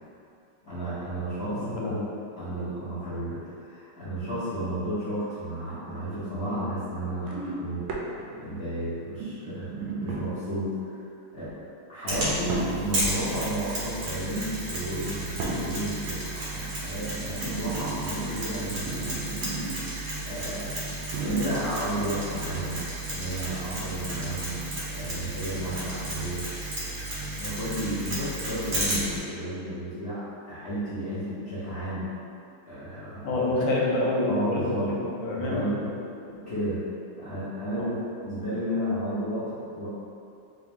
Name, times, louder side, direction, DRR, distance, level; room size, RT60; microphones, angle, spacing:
voice 1, 0.6-1.9 2.4-10.9 11.3-11.5 11.9-19.5 20.2-20.8 21.2-22.8 23.1-24.6 24.9-26.5 27.4-32.1 32.6-33.4 34.3-34.9 35.3-35.8 36.2-36.8 37.2-39.9, right 1 dB, 40° left, -15 dB, 1.0 m, -32 dB
voice 2, 1.5-2.1 33.2-36.0 37.8-37.9, left 2 dB, 70° left, -4 dB, 1.4 m, -27 dB
sound 1, 7.2-8.6 9.1-10.6 11.3-11.6 12.4-13.2 14.4-14.6 15.3-16.0 16.8-20.0 20.3-20.4 21.1-21.9 22.7-22.8, right 3 dB, 75° right, 1.3 m, -35 dB
Mechanisms, 12.1-29.2, right 1 dB, 40° right, 1.1 m, -33 dB
3.8 x 2.9 x 3.5 m, 2.5 s
omnidirectional pair, 2.4 m